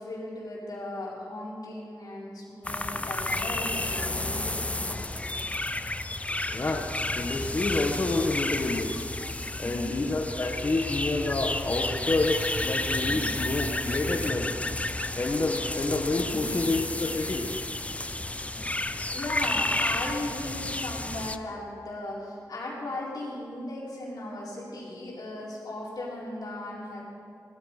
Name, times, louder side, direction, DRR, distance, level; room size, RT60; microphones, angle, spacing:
voice 1, 0.0-5.4 9.6-10.0 12.9-13.4 16.1-16.6 18.9-27.0, left 1 dB, 70° left, -5 dB, 4.6 m, -37 dB
sound 1, 2.6-21.4, left 2 dB, 20° left, 0.6 m, -31 dB
voice 2, 6.5-9.0 9.6-14.5 15.2-17.5, left 2 dB, 40° left, 0 dB, 1.2 m, -28 dB
17.5 x 13.5 x 4.9 m, 2.5 s
wide cardioid pair, 85°, 7 cm